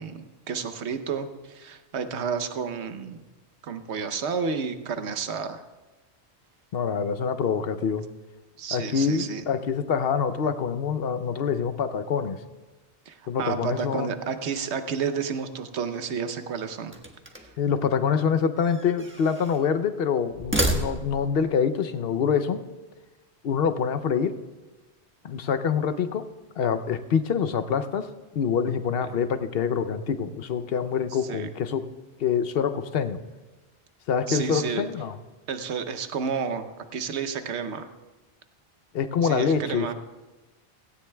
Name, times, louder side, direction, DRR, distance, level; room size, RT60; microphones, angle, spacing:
voice 1, 0.0-3.2 3.6-5.6 8.6-9.4 13.1-16.9 17.4-17.5 31.2-31.5 34.3-34.8 35.5-37.9 39.2-39.9, right 6 dB, 80° right, 9 dB, 1.1 m, -31 dB
voice 2, 6.7-8.0 8.7-12.4 13.3-14.1 17.6-22.6 23.4-24.3 25.2-26.3 26.6-28.1 28.3-31.8 32.2-33.2 34.1-35.1 38.9-39.9, left 6 dB, 65° left, 11 dB, 0.8 m, -25 dB
sound 1, 16.9-17.7 18.6-19.6 20.3-21.3, right 1 dB, 10° right, 1.2 m, -30 dB
17.0 x 16.0 x 2.2 m, 1.2 s
omnidirectional pair, 1.1 m